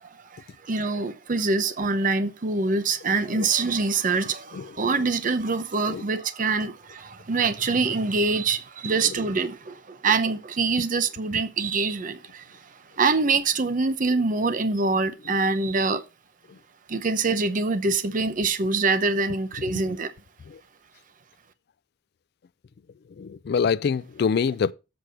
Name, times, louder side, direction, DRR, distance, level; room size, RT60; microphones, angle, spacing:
voice 1, 0.3-12.4 13.0-16.0 16.9-20.1, right 4 dB, 45° right, 0.7 m, -25 dB
voice 2, 4.5-5.1 5.9-6.1 9.0-9.1 19.6-19.8 20.5-20.6 23.2-24.7, left 6 dB, 55° left, 0.3 m, -26 dB
7.8 x 4.8 x 6.3 m
head